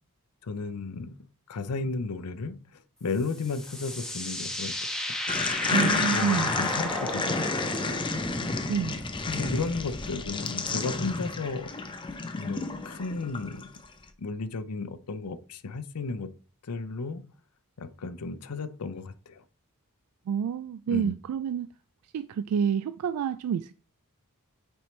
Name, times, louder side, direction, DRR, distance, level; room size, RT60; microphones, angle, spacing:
voice 1, 0.4-1.2 1.5-4.7 5.1-5.2 6.1-7.9 9.3-11.7 12.3-13.7 14.2-16.3 16.6-17.3 17.8-19.4 20.9-21.1, left 4 dB, 85° left, 0.6 m, -34 dB
sound 1, 3.1-10.3, left 1 dB, 5° left, 1.2 m, -34 dB
sound 2, 5.3-13.9, left 3 dB, 20° left, 0.6 m, -31 dB
voice 2, 5.7-6.5 8.7-9.0 20.3-21.7 22.0-23.7, right 7 dB, 80° right, 0.3 m, -28 dB
8.9 x 4.4 x 3.2 m
head